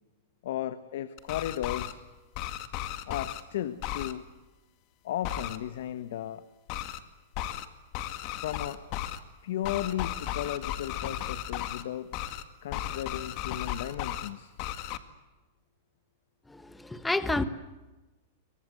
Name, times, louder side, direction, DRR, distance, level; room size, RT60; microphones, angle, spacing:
voice 1, 0.4-2.0 3.1-4.3 5.0-6.4 8.4-8.8 9.4-12.1 12.6-14.5, left 11 dB, 70° left, 12 dB, 1.3 m, -35 dB
sound 1, 1.2-1.9 2.3-3.4 3.8-4.1 5.2-5.6 6.7-7.0 7.3-7.7 7.9-9.2 9.6-11.8 12.1-12.4 12.7-14.3 14.6-15.0, left 12 dB, 45° left, 2.0 m, -35 dB
voice 2, 16.5-17.4, left 2 dB, 5° left, 12 dB, 1.3 m, -29 dB
27.0 x 23.5 x 8.0 m, 1.1 s
hypercardioid pair, 140°, 0 cm